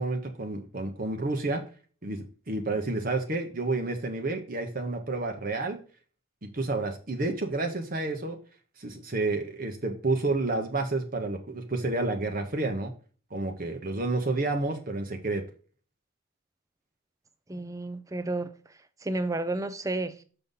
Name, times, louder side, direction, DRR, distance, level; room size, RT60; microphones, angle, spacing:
voice 1, 0.0-1.6 2.0-5.8 6.4-8.4 8.8-12.9 13.3-15.4, right 2 dB, 40° right, 0.9 m, -30 dB
voice 2, 17.5-18.5 19.0-20.2, right 2 dB, 15° right, 0.5 m, -31 dB
6.7 x 5.4 x 3.8 m
head